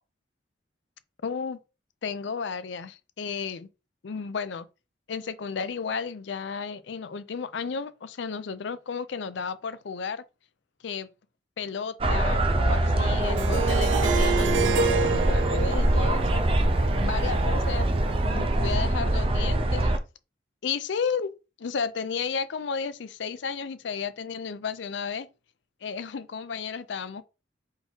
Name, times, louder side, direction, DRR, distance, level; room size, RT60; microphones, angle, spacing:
voice 1, 1.2-1.6 2.0-3.7 4.0-4.7 5.1-10.2 10.8-11.1 11.6-16.4 17.0-17.9 18.2-19.9 20.6-21.3 21.6-25.3 25.8-27.2, left 5 dB, 70° left, 0.5 m, -33 dB
sound 1, 12.0-20.0, right 1 dB, 30° right, 0.5 m, -24 dB
Harp, 13.4-18.3, right 5 dB, 85° right, 0.4 m, -30 dB
3.8 x 2.8 x 4.4 m
head